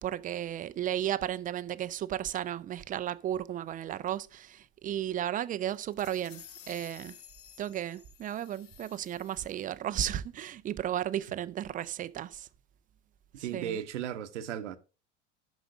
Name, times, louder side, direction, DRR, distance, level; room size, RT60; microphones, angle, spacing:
voice 1, 0.0-7.2 7.6-12.5 13.5-13.8, right 11 dB, 25° right, 0.5 m, -34 dB
sound 1, 5.7-9.7, left 10 dB, 40° left, 0.9 m, -53 dB
voice 2, 13.3-14.8, right 10 dB, 70° right, 1.0 m, -36 dB
9.3 x 6.0 x 5.0 m
figure-of-eight pair, 80°, 37 cm